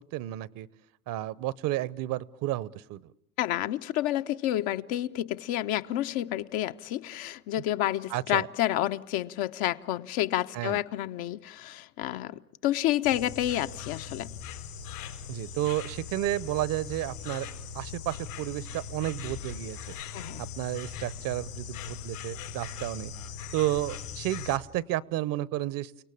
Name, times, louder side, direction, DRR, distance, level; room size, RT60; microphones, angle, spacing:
voice 1, 0.1-0.7 1.1-3.0 8.1-8.5 10.5-10.8 15.3-17.5 17.7-19.9 20.6-23.1 23.5-25.9, right 15 dB, 50° right, 0.9 m, -31 dB
voice 2, 3.4-14.3 20.1-20.4, left 13 dB, 55° left, 1.0 m, -29 dB
Insect, 13.0-24.6, left 7 dB, 90° left, 5.2 m, -40 dB
30.0 x 18.0 x 8.5 m
hypercardioid pair, 95°, 44 cm